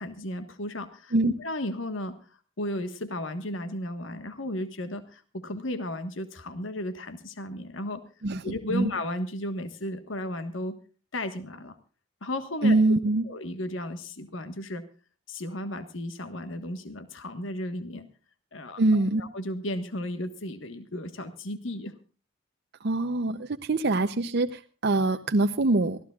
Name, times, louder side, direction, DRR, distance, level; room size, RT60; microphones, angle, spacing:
voice 1, 0.0-1.1 1.4-2.1 2.6-8.0 8.4-10.8 11.1-11.8 12.2-12.8 13.2-14.8 15.3-18.1 18.5-18.8 19.2-21.9, left 1 dB, 70° left, 10 dB, 1.5 m, -34 dB
voice 2, 8.2-8.9 12.6-13.2 18.8-19.2 22.8-26.0, right 2 dB, 55° right, 6 dB, 0.7 m, -24 dB
24.0 x 15.5 x 2.4 m, 0.35 s
head